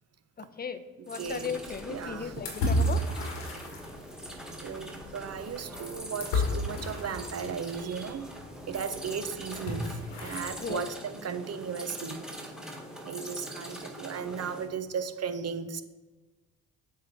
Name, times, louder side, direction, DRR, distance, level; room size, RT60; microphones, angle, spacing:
voice 1, 0.4-3.0 10.6-10.8, left 6 dB, 25° left, 11 dB, 0.7 m, -36 dB
sound 1, 1.0-14.7, equal, ahead, 1.5 m, -43 dB
sound 2, 1.2-10.8, left 1 dB, 80° left, 1.6 m, -34 dB
voice 2, 1.2-1.5 1.9-2.3 4.6-8.2 8.7-12.2 13.0-15.8, right 6 dB, 40° right, 11 dB, 0.7 m, -36 dB
7.6 x 3.9 x 4.1 m, 1.2 s
hypercardioid pair, 50°, 39 cm